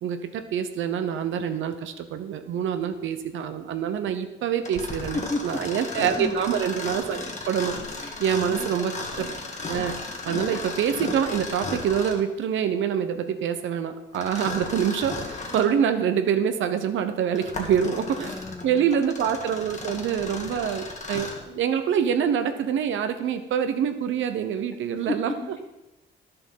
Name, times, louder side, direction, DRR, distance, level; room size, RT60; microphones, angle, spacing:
voice 1, 0.0-9.3 9.7-18.3 18.6-25.3, right 8 dB, 75° right, 8 dB, 0.9 m, -26 dB
Mechanisms, 4.6-12.3 14.1-15.7 16.3-16.4 17.1-21.5, left 3 dB, 35° left, 1.8 m, -35 dB
voice 2, 5.1-6.4 8.0-8.9 18.2-19.0 24.9-25.6, left 2 dB, 15° left, 4 dB, 0.7 m, -34 dB
11.0 x 6.9 x 5.6 m, 1.0 s
cardioid pair, 90°, 20 cm